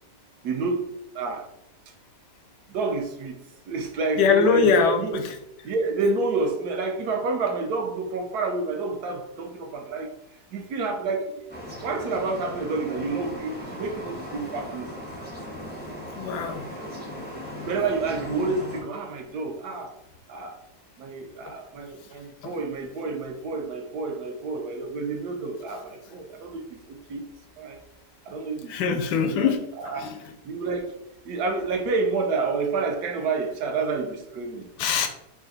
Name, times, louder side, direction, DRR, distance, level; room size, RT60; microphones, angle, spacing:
voice 1, 0.4-1.5 2.7-5.2 5.6-10.1 10.5-11.4 11.8-14.9 17.6-19.9 20.3-20.6 21.0-27.2 27.6-27.8 28.3-29.0 29.3-30.1 30.4-30.9 31.2-34.7, right 3 dB, 75° right, 4 dB, 1.1 m, -29 dB
voice 2, 4.2-5.2 16.1-16.6 28.7-29.6 29.9-30.2 34.8-35.1, left 5 dB, 90° left, 5 dB, 1.2 m, -22 dB
sound 1, 11.5-18.8, left 1 dB, 10° right, 0.4 m, -38 dB
3.2 x 2.5 x 3.9 m, 0.79 s
omnidirectional pair, 1.7 m